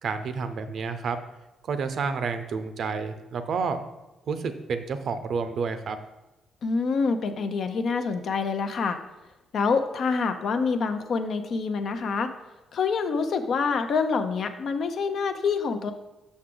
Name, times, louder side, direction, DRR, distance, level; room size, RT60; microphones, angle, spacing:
voice 1, 0.0-1.2 1.6-3.8 4.3-6.0, right 5 dB, 60° right, 9 dB, 0.6 m, -30 dB
voice 2, 6.6-9.0 9.5-12.3 12.7-15.9, left 5 dB, 60° left, 7 dB, 0.6 m, -26 dB
6.2 x 5.8 x 3.8 m, 1.0 s
cardioid pair, 90°, 0 cm